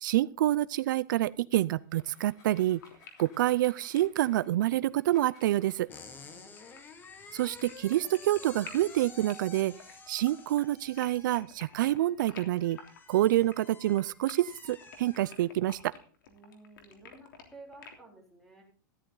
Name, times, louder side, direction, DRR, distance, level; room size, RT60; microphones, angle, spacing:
voice 1, 0.0-2.8 3.2-5.9 7.3-9.7 10.1-12.8 13.1-15.9, right 14 dB, 75° right, 19 dB, 0.4 m, -27 dB
sound 1, 1.8-5.9 6.7-9.5, left 3 dB, 35° left, 5.9 m, -61 dB
sound 2, 2.0-2.1 2.3-18.0, left 6 dB, 90° left, 3.3 m, -51 dB
sound 3, 5.9-15.9, left 4 dB, 20° left, 1.6 m, -51 dB
voice 2, 6.2-6.6 16.3-18.6, right 2 dB, 5° left, 1 dB, 4.0 m, -53 dB
13.5 x 11.0 x 3.9 m, 0.40 s
supercardioid pair, 150°, 11 cm